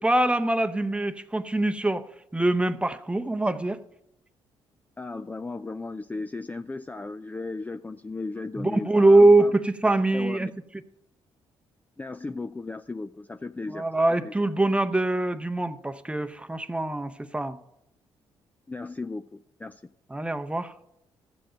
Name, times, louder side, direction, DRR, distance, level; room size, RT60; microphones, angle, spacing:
voice 1, 0.0-2.0 2.3-3.8 8.6-10.5 13.7-17.6 20.1-20.7, right 2 dB, 10° right, 0.8 m, -23 dB
voice 2, 5.0-9.5 10.1-10.5 12.0-13.9 14.2-14.3 18.7-19.8, left 3 dB, 15° left, 0.4 m, -36 dB
14.0 x 7.7 x 5.2 m
supercardioid pair, 65°, 10 cm